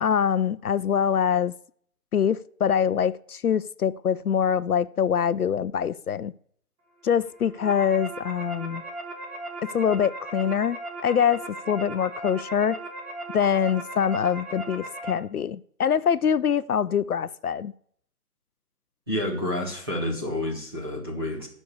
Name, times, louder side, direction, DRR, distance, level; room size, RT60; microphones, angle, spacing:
voice 1, 0.0-1.5 2.1-6.3 7.0-8.8 9.7-12.8 13.3-17.7, left 8 dB, 70° left, 0.5 m, -24 dB
sound 1, 7.3-15.1, right 2 dB, 70° right, 3.3 m, -37 dB
voice 2, 19.1-21.5, left 1 dB, 15° right, 1.6 m, -29 dB
12.0 x 5.4 x 6.7 m
hypercardioid pair, 180°, 47 cm